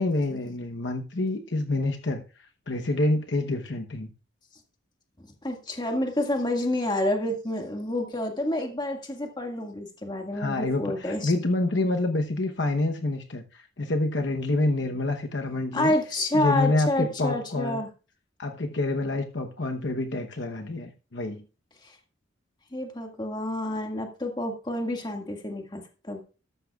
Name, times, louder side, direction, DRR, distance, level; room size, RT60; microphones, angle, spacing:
voice 1, 0.0-4.1 10.3-15.9 16.3-17.8 18.4-21.4, left 2 dB, 60° left, 4 dB, 1.0 m, -27 dB
voice 2, 5.4-11.3 15.7-17.9 21.8-21.9 22.7-26.2, left 1 dB, 20° left, 3 dB, 1.9 m, -28 dB
13.5 x 12.0 x 2.4 m, 0.34 s
head